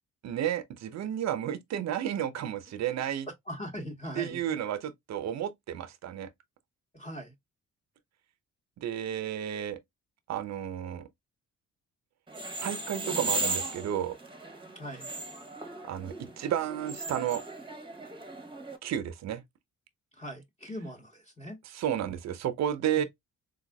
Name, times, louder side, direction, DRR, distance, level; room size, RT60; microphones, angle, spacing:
voice 1, 0.2-3.3 4.1-6.3 8.8-9.8 10.3-11.1 12.6-14.1 15.8-17.4 18.8-19.4 21.6-23.0, right 10 dB, 60° right, 0.7 m, -32 dB
voice 2, 3.5-4.6 6.9-7.3 14.7-15.1 20.2-21.6 23.0-23.1, equal, 20° left, 1.2 m, -40 dB
sound 1, 12.3-18.8, right 2 dB, 15° right, 1.0 m, -36 dB
4.1 x 2.7 x 2.2 m
cardioid pair, 90°, 30 cm